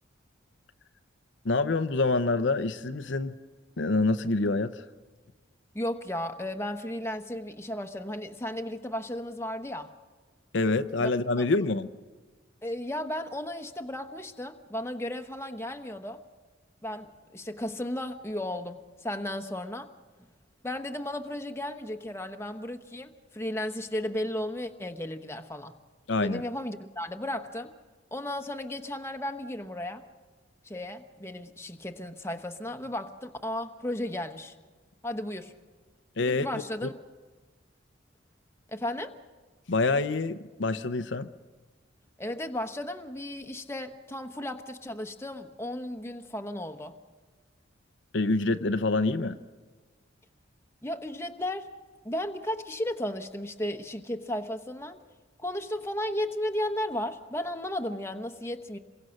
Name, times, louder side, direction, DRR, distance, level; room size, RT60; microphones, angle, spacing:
voice 1, 1.4-3.3 3.8-4.8 10.5-11.9 26.1-26.4 36.2-36.5 36.8-36.9 39.7-41.3 48.1-49.4, left 3 dB, 65° left, 0.7 m, -26 dB
voice 2, 5.7-9.9 11.0-11.1 11.4-11.5 12.6-16.2 16.8-19.9 20.6-25.7 26.2-27.7 28.1-30.0 30.6-34.5 35.0-35.5 36.2-36.9 38.7-39.1 42.2-46.9 50.8-51.7 52.0-55.0 55.4-58.8, left 1 dB, 15° left, 1.1 m, -34 dB
28.0 x 22.5 x 6.5 m
head